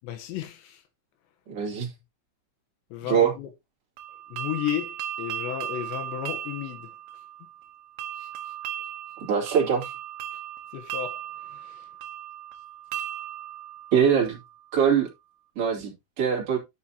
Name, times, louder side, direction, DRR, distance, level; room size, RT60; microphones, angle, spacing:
voice 1, 0.0-0.8 2.9-3.5 4.3-6.9 8.2-8.3 10.7-11.2 11.5-11.8, left 12 dB, 75° left, 3.0 m, -33 dB
voice 2, 1.5-1.9 3.0-3.3 9.3-9.9 13.9-14.4 14.7-15.1 15.6-16.6, right 7 dB, 35° right, 2.8 m, -23 dB
sound 1, 4.0-14.8, right 11 dB, 85° right, 2.1 m, -37 dB
12.0 x 6.2 x 2.8 m
omnidirectional pair, 5.7 m